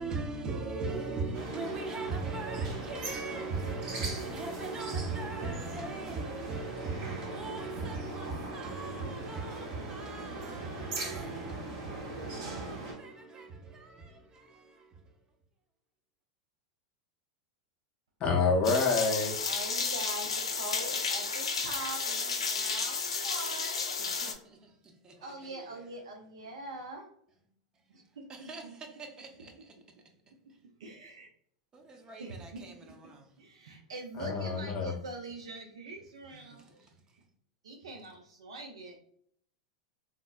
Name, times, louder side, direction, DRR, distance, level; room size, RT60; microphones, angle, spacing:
voice 1, 0.0-14.9 24.0-24.3 25.2-25.3 28.3-29.5 31.7-33.3 36.5-36.6, right 3 dB, 25° right, 0.6 m, -39 dB
sound 1, 1.3-12.9, right 2 dB, 60° right, 0.8 m, -40 dB
voice 2, 18.2-19.4 34.2-34.9, left 4 dB, 40° left, 0.5 m, -27 dB
sound 2, 18.6-24.3, left 4 dB, 85° left, 0.5 m, -32 dB
voice 3, 19.5-23.9 25.2-27.1 27.9-28.8 29.3-29.6 30.8-31.3 32.2-32.8 33.4-36.9 37.6-39.0, right 2 dB, 75° right, 0.4 m, -44 dB
3.6 x 2.0 x 2.3 m
hypercardioid pair, 95°, 3 cm